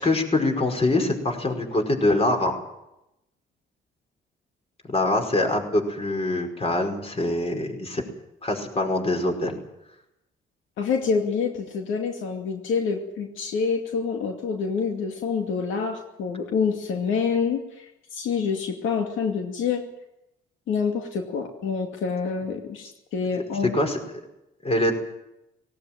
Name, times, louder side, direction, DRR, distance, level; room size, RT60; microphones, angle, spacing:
voice 1, 0.0-2.5 4.9-8.0 8.4-9.6 23.3-24.0 24.6-25.0, left 2 dB, 30° left, 4 dB, 5.3 m, -24 dB
voice 2, 10.8-19.8 20.7-23.8, left 5 dB, 80° left, 3 dB, 2.5 m, -27 dB
18.0 x 18.0 x 9.1 m, 0.88 s
cardioid pair, 90°, 20 cm